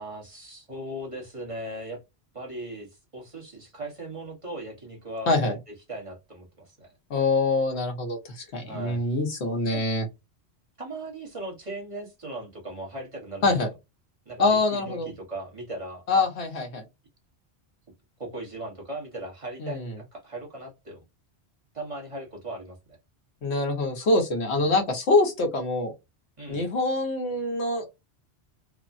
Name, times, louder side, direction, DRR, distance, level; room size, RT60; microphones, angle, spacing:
voice 1, 0.0-2.0 2.3-5.6 5.9-6.9 8.7-9.0 9.7-9.9 10.8-13.6 14.2-16.3 18.2-21.0 21.7-23.0 24.5-24.7 26.4-26.6, right 1 dB, 30° right, 1.1 m, -38 dB
voice 2, 7.1-10.0 13.4-13.7 14.4-15.1 16.1-16.8 19.6-19.9 23.4-25.9 26.5-27.9, left 2 dB, 80° left, 1.2 m, -25 dB
3.4 x 2.1 x 2.5 m
omnidirectional pair, 1.1 m